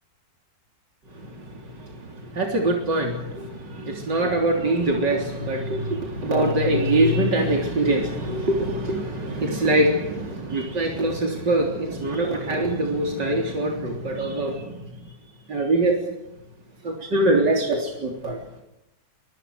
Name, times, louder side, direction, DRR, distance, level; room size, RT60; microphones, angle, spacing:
voice 1, 2.3-14.7 15.5-16.0 16.8-18.4, right 1 dB, 90° right, 4.3 m, -23 dB
25.0 x 24.0 x 6.5 m
omnidirectional pair, 1.8 m